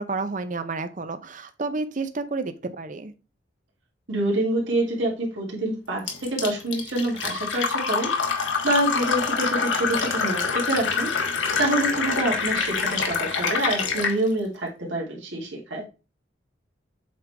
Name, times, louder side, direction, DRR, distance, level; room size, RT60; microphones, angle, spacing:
voice 1, 0.0-3.1, right 3 dB, 45° right, 0.6 m, -30 dB
voice 2, 4.1-8.2 8.6-11.1 11.6-15.9, right 1 dB, 85° right, 2.4 m, -26 dB
Fill (with liquid), 6.1-14.2, left 5 dB, 85° left, 1.3 m, -26 dB
7.6 x 3.8 x 3.4 m
head